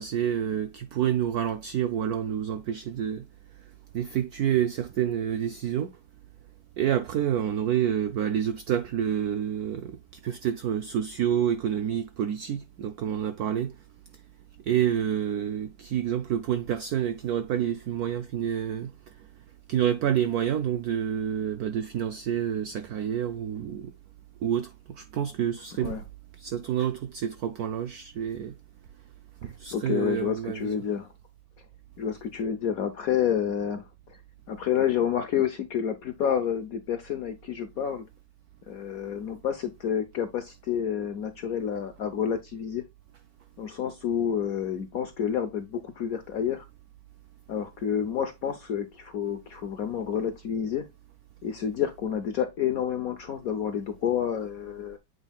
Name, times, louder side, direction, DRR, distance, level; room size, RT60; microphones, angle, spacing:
voice 1, 0.0-3.3 3.9-5.9 6.8-13.8 14.7-18.9 19.7-23.9 24.4-26.0 26.4-28.5 29.4-30.9, right 9 dB, 65° right, 1.0 m, -28 dB
voice 2, 29.4-31.1 32.0-34.2 34.5-38.0 38.7-42.8 43.6-46.6 47.5-50.9 51.4-55.0, left 8 dB, 60° left, 1.1 m, -29 dB
8.2 x 5.4 x 2.3 m
omnidirectional pair, 2.0 m